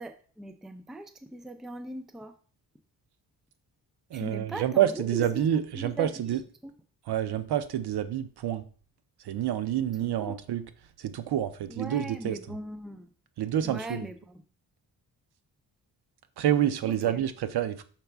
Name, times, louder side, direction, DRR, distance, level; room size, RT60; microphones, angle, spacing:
voice 1, 0.0-2.3 4.1-6.7 10.2-10.4 11.7-13.1 13.6-14.1 16.8-17.2, right 1 dB, ahead, 0.4 m, -40 dB
voice 2, 4.1-6.4 7.1-8.6 9.2-10.7 11.0-12.6 13.4-14.1 16.4-17.8, right 10 dB, 70° right, 0.7 m, -28 dB
5.8 x 4.8 x 3.4 m
wide cardioid pair, 155°, 41 cm